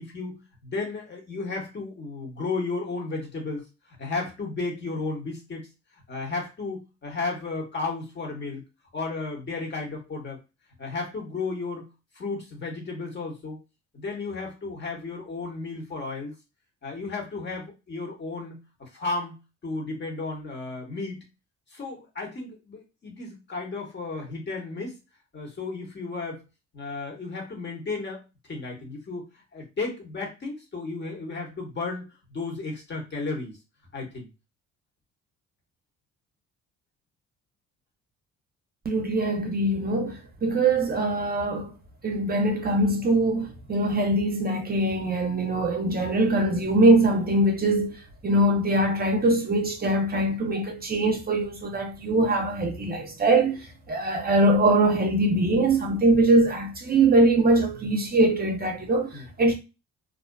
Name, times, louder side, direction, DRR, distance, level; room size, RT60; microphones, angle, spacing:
voice 1, 0.0-3.7 4.0-5.7 6.1-8.6 8.9-10.4 10.8-11.9 12.1-13.6 13.9-16.3 16.8-19.3 19.6-21.2 21.7-25.0 25.3-26.4 26.7-28.2 28.5-29.2 29.5-33.6 33.9-34.3 59.1-59.3, left 3 dB, 35° left, 1.2 m, -33 dB
voice 2, 38.9-41.7 42.0-47.9 48.2-59.1 59.4-59.5, right 2 dB, 30° right, 0.6 m, -22 dB
2.5 x 2.2 x 2.2 m
cardioid pair, 90°, 30 cm